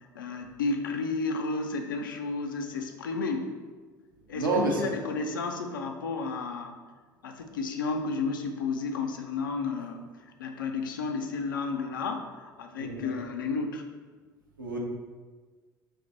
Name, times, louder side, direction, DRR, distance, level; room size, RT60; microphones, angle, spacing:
voice 1, 0.2-3.5 4.3-6.8 7.2-10.1 10.4-13.8, left 4 dB, 75° left, 5 dB, 0.4 m, -32 dB
voice 2, 4.3-4.8 12.8-13.0 14.6-14.8, right 3 dB, 85° right, -2 dB, 0.7 m, -28 dB
3.6 x 2.5 x 4.0 m, 1.4 s
figure-of-eight pair, 60°, 11 cm